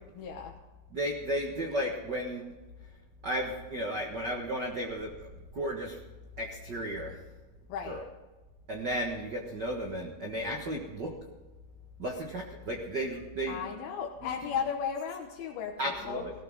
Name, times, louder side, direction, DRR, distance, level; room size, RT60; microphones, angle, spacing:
voice 1, 0.2-0.5 7.7-8.0 13.5-15.7 16.0-16.2, left 7 dB, 80° left, 1 dB, 3.0 m, -35 dB
voice 2, 0.9-2.5 3.2-5.3 5.5-6.0 6.4-7.2 7.9-8.0 8.7-11.1 12.0-13.6 15.8-16.3, equal, 55° right, 1 dB, 1.1 m, -34 dB
18.0 x 14.0 x 3.7 m, 1.2 s
omnidirectional pair, 4.3 m